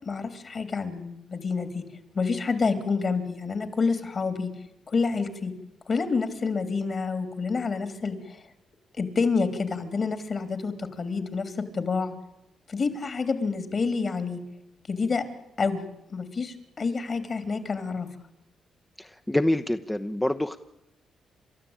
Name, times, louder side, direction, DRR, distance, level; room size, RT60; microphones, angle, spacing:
voice 1, 0.0-1.8 2.1-4.5 4.9-5.5 5.9-8.4 9.0-12.2 12.7-14.4 14.9-15.2 15.6-15.8 16.1-18.1, left 4 dB, 50° left, 10 dB, 3.3 m, -28 dB
voice 2, 19.0-20.6, left 1 dB, 10° left, 7 dB, 0.9 m, -26 dB
29.5 x 13.0 x 8.9 m, 0.88 s
cardioid pair, 65°, 0 cm